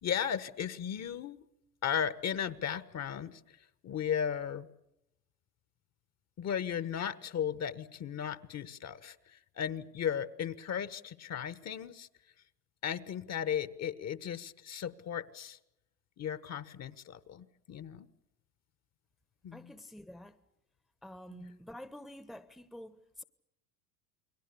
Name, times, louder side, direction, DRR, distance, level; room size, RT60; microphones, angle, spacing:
voice 1, 0.0-1.4 1.8-3.4 3.8-4.7 6.4-12.1 12.8-15.6 16.2-18.1 19.4-19.7 21.3-21.4, left 8 dB, 35° left, 1.3 m, -36 dB
voice 2, 19.5-20.4 21.0-23.2, left 1 dB, ahead, 1.1 m, -48 dB
29.5 x 22.0 x 6.9 m
hypercardioid pair, 90°, 47 cm